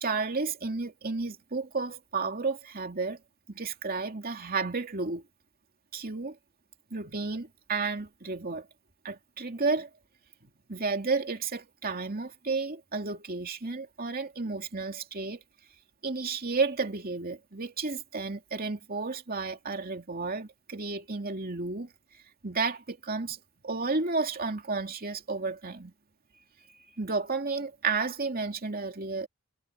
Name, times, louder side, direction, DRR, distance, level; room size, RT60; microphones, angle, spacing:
voice 1, 0.0-3.2 3.5-5.2 5.9-6.3 6.9-8.7 9.0-9.9 10.7-15.4 16.0-21.9 22.4-23.4 23.6-25.9 27.0-29.3, right 4 dB, 45° right, 2.6 m, -32 dB
head